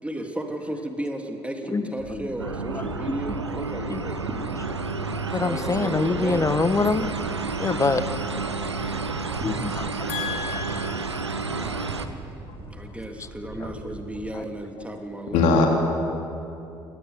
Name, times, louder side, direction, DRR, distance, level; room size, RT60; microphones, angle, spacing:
voice 1, 0.0-4.2 5.4-6.5 10.0-10.5 11.6-12.2 12.7-15.7, right 1 dB, 10° right, 4 dB, 3.2 m, -34 dB
voice 2, 1.7-2.3 2.7-3.1 3.9-4.0 5.3-7.1 7.6-8.0 9.4-10.2 13.6-13.7 14.3-14.4, left 3 dB, 20° left, 12 dB, 1.5 m, -25 dB
sound 1, 2.0-14.3, right 2 dB, 45° right, 4.5 m, -40 dB
sound 2, 2.4-12.1, right 4 dB, 90° right, 0.9 m, -30 dB
voice 3, 10.1-11.3 15.3-15.7, left 4 dB, 60° left, 1 dB, 3.4 m, -24 dB
22.5 x 18.5 x 9.8 m, 2.8 s
figure-of-eight pair, 55°, 14 cm